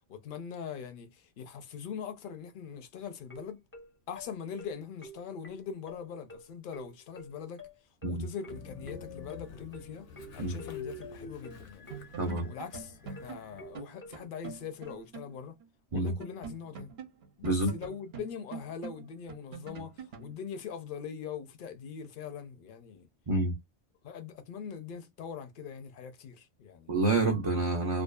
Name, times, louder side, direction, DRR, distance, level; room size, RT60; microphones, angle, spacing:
voice 1, 0.1-3.6 4.1-7.6 8.0-10.0 10.3-12.1 12.4-15.5 15.9-16.9 17.4-23.1 24.0-27.0, left 7 dB, 55° left, 0.6 m, -42 dB
sound 1, 3.3-15.1, left 1 dB, 15° left, 0.4 m, -49 dB
Train, 8.5-13.8, left 5 dB, 80° left, 1.0 m, -47 dB
sound 2, 11.5-11.6 11.9-15.3 15.6-15.7 16.1-20.3, right 5 dB, 65° right, 0.8 m, -45 dB
voice 2, 12.2-12.5 15.9-16.1 17.4-17.7 23.3-23.5 26.9-28.0, right 2 dB, 45° right, 0.4 m, -28 dB
2.6 x 2.3 x 2.2 m
omnidirectional pair, 1.2 m